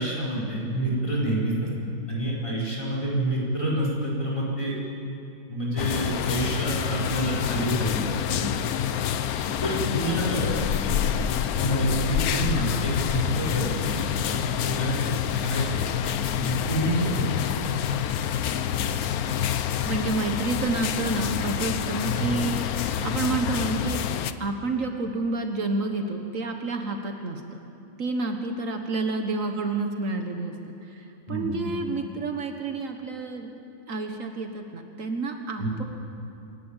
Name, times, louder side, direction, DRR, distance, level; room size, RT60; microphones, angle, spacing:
voice 1, 0.0-1.7 2.1-4.7 5.5-8.4 9.6-10.5 10.8-11.0 11.6-14.3 14.6-15.1 15.4-17.6 22.2-22.3 31.3-31.6 35.6-35.7, right 1 dB, 20° left, -5 dB, 5.0 m, -28 dB
sound 1, 5.8-24.3, left 9 dB, 80° left, 1.2 m, -27 dB
voice 2, 19.8-24.0 24.4-27.4 28.0-33.5 33.9-35.8, right 3 dB, 65° right, 4 dB, 1.6 m, -29 dB
27.5 x 11.5 x 8.9 m, 2.7 s
omnidirectional pair, 1.5 m